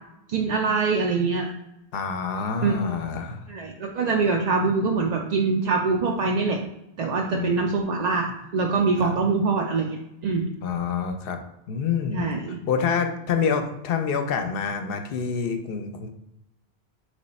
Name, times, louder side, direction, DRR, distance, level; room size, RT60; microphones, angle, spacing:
voice 1, 0.3-1.5 2.6-2.8 3.5-6.6 7.0-10.4 12.1-12.6, right 4 dB, 55° right, 0 dB, 0.5 m, -24 dB
voice 2, 1.9-3.4 7.3-7.7 9.0-9.2 10.6-11.4 11.7-12.3 12.7-16.1, left 6 dB, 70° left, 6 dB, 0.7 m, -27 dB
3.2 x 3.1 x 4.0 m, 0.86 s
omnidirectional pair, 1.1 m